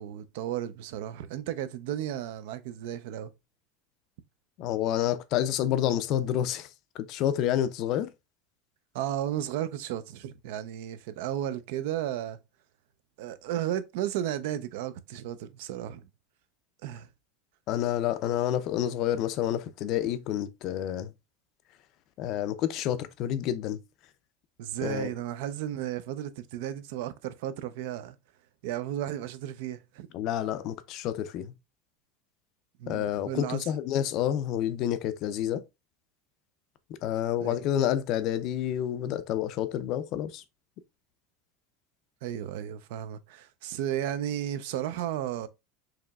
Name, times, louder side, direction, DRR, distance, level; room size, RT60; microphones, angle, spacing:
voice 1, 0.0-3.3 8.9-12.4 13.2-16.0 16.8-17.1 24.6-28.2 28.6-30.1 32.8-33.6 37.4-37.6 42.2-45.5, right 11 dB, 70° right, 0.4 m, -34 dB
voice 2, 4.6-6.7 7.0-8.1 17.7-21.1 22.2-23.8 24.8-25.1 30.1-31.5 32.9-35.6 37.0-40.4, left 11 dB, 45° left, 0.4 m, -29 dB
4.7 x 2.9 x 2.3 m
supercardioid pair, 150°, 0 cm